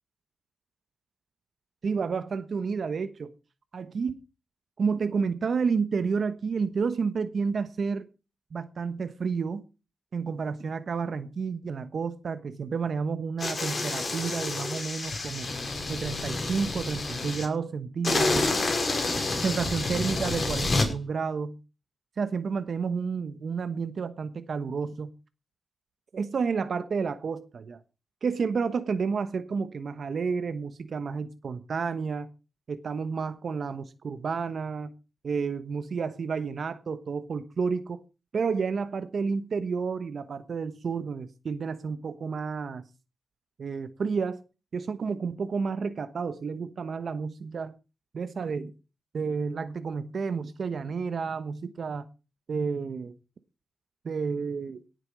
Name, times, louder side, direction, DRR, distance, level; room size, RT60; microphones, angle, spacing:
voice 1, 1.8-3.3 3.7-4.2 4.8-8.1 8.5-9.6 10.1-15.5 15.9-18.6 19.4-21.6 22.2-25.1 26.1-27.8 28.2-32.3 32.7-34.9 35.2-38.0 38.3-42.9 43.6-44.4 44.7-47.7 48.1-48.7 49.1-52.1 52.5-53.1 54.0-54.8, right 5 dB, 60° right, 1.1 m, -30 dB
sound 1, 13.4-17.4 18.0-20.9, left 2 dB, 40° left, 5.4 m, -29 dB
18.0 x 8.2 x 5.2 m
wide cardioid pair, 100°, 0 cm